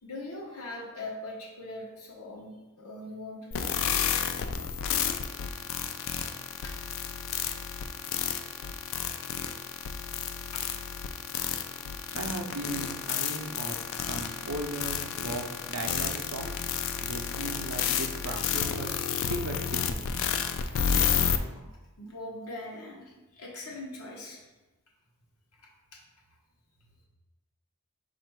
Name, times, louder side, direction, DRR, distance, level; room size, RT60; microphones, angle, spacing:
voice 1, 0.0-3.7 6.6-6.7 10.5-10.6 22.0-24.4 25.6-26.0, left 2 dB, 75° left, -2 dB, 0.9 m, -41 dB
sound 1, 3.5-21.4, left 8 dB, 60° left, 0.3 m, -31 dB
voice 2, 11.8-16.6 17.0-19.0 19.3-20.0, right 2 dB, 70° right, 3 dB, 0.5 m, -37 dB
4.2 x 2.5 x 4.6 m, 1.1 s
head